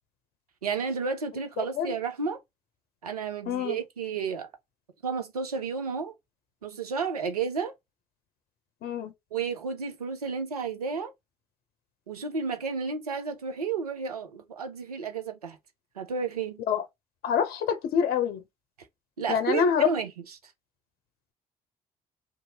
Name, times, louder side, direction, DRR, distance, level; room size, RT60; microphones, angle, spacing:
voice 1, 0.6-2.4 3.0-4.5 5.0-6.1 6.6-7.7 9.3-11.1 12.1-15.6 16.0-16.6 19.2-20.1, right 5 dB, 85° right, 0.5 m, -31 dB
voice 2, 1.6-1.9 3.5-3.8 8.8-9.1 16.7-16.8 17.2-18.4 19.3-19.9, left 8 dB, 55° left, 0.7 m, -26 dB
2.6 x 2.5 x 2.8 m
figure-of-eight pair, 45°, 19 cm